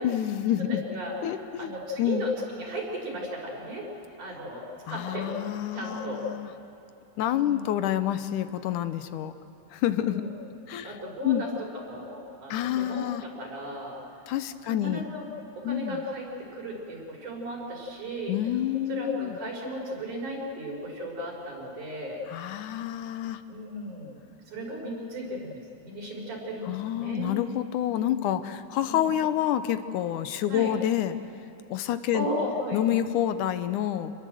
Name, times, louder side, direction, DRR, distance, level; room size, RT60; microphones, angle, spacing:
voice 1, 0.0-0.8 1.2-1.7 2.0-2.3 4.9-6.5 7.2-9.3 9.7-10.2 10.7-11.0 11.2-11.4 12.5-13.2 14.3-15.0 15.6-16.0 18.3-19.4 22.3-23.4 26.7-31.2 31.7-32.3 32.7-34.1, left 11 dB, 85° left, 11 dB, 2.4 m, -28 dB
voice 2, 0.7-3.9 4.2-5.4 5.7-6.2 7.4-7.6 10.0-10.3 10.8-14.0 14.6-15.2 15.6-16.2 16.5-18.4 18.9-22.2 23.5-24.2 24.5-27.4 28.8-29.1 30.5-30.7 32.1-32.8, equal, 80° right, -2 dB, 6.4 m, -35 dB
27.5 x 20.5 x 7.8 m, 2.9 s
omnidirectional pair, 3.5 m